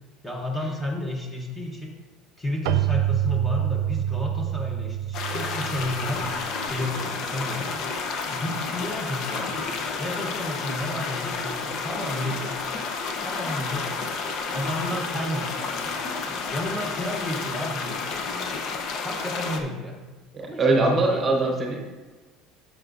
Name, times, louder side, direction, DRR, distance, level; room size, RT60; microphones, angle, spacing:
voice 1, 0.2-1.9 2.4-6.3 6.6-7.9 8.3-12.6 13.2-13.9 14.5-18.6 19.0-20.0 20.4-21.6, left 1 dB, 10° left, -1 dB, 0.9 m, -32 dB
Keyboard (musical), 2.6-7.1, right 14 dB, 75° right, 0.3 m, -27 dB
sound 1, 5.1-19.6, left 4 dB, 45° left, 0.7 m, -31 dB
voice 2, 20.3-21.9, right 2 dB, 20° right, 1 dB, 1.0 m, -22 dB
11.5 x 6.1 x 2.6 m, 1.3 s
cardioid pair, 170°, 0 cm